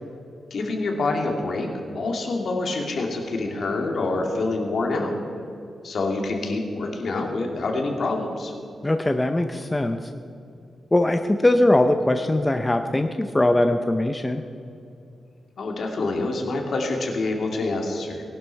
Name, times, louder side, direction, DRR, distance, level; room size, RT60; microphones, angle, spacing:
voice 1, 0.5-1.7 1.9-5.1 5.8-8.5 15.6-18.2, left 2 dB, 60° left, 1 dB, 2.3 m, -26 dB
voice 2, 8.8-10.0 10.9-14.4, left 1 dB, 15° left, 6 dB, 0.6 m, -21 dB
19.5 x 11.5 x 4.6 m, 2.6 s
wide cardioid pair, 145°, 0 cm